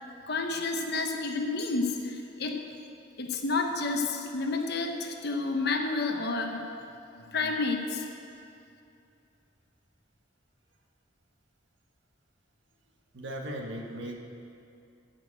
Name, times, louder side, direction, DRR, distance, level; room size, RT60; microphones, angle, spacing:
voice 1, 0.3-2.6 3.2-6.6 7.1-8.0, left 3 dB, 55° left, 3 dB, 1.1 m, -30 dB
voice 2, 13.1-14.2, right 1 dB, 65° right, 1 dB, 1.5 m, -37 dB
13.5 x 6.2 x 8.1 m, 2.6 s
head